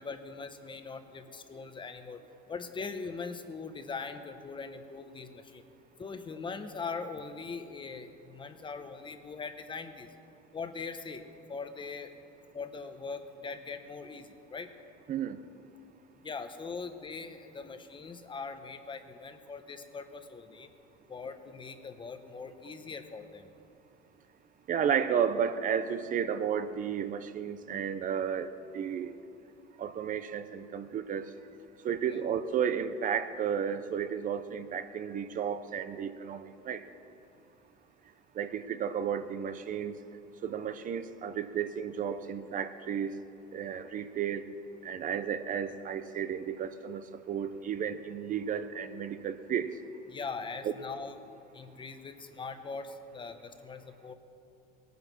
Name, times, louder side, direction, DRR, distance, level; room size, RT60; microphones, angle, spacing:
voice 1, 0.0-2.2 2.5-5.6 6.0-10.1 10.5-11.2 11.5-12.2 12.5-14.7 16.2-20.7 21.1-23.5 32.1-32.2 50.1-51.2 51.5-54.1, left 4 dB, 25° left, 8 dB, 0.9 m, -41 dB
voice 2, 15.1-15.4 24.7-29.2 29.8-31.3 31.8-36.8 38.4-39.9 40.4-43.1 43.5-44.5 44.8-49.7 50.6-50.7, right 8 dB, 40° right, 11 dB, 0.6 m, -33 dB
18.5 x 9.3 x 6.0 m, 2.6 s
cardioid pair, 120°, 21 cm